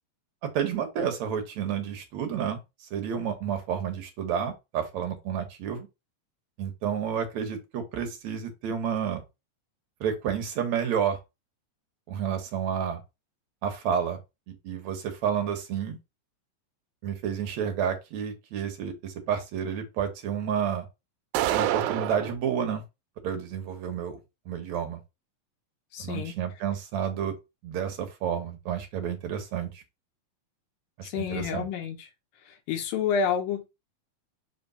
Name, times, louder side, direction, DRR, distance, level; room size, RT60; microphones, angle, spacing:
voice 1, 0.4-5.9 6.6-9.2 10.0-11.2 12.1-13.0 13.6-14.2 14.5-16.0 17.0-20.9 21.5-22.8 23.2-24.2 24.5-25.0 26.0-27.4 27.6-29.8 31.0-31.7, right 8 dB, 65° right, 2.1 m, -30 dB
sound 1, 21.3-22.4, right 13 dB, 85° right, 2.3 m, -26 dB
voice 2, 25.9-26.3 31.0-32.0 32.5-33.6, left 7 dB, 80° left, 2.7 m, -29 dB
5.5 x 3.4 x 5.5 m
omnidirectional pair, 4.1 m